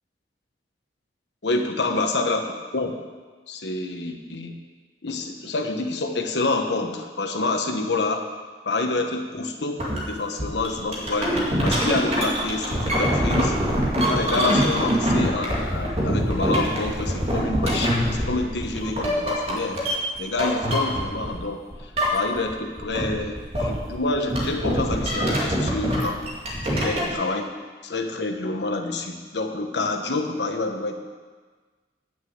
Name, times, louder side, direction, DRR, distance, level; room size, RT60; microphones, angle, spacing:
voice 1, 1.4-2.4 2.7-3.0 3.5-4.6 5.0-8.3 8.6-13.6 14.1-19.8 20.2-26.2 26.7-27.5 27.8-30.9, left 3 dB, 80° left, 5 dB, 1.1 m, -27 dB
sound 1, 9.8-10.0 10.4-21.4 21.7-22.5 22.8-27.1, equal, 35° right, 2.2 m, -24 dB
9.7 x 6.4 x 8.0 m, 1.4 s
head